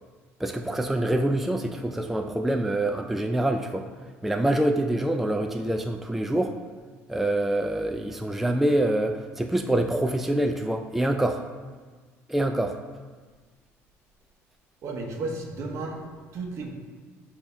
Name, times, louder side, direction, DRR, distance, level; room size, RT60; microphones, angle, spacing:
voice 1, 0.4-3.8 4.2-6.6 7.1-11.4 12.3-12.8, right 1 dB, 5° right, 5 dB, 0.3 m, -25 dB
voice 2, 14.8-16.7, right 3 dB, 60° right, 2 dB, 1.0 m, -34 dB
6.9 x 2.8 x 5.3 m, 1.4 s
cardioid pair, 100°, 6 cm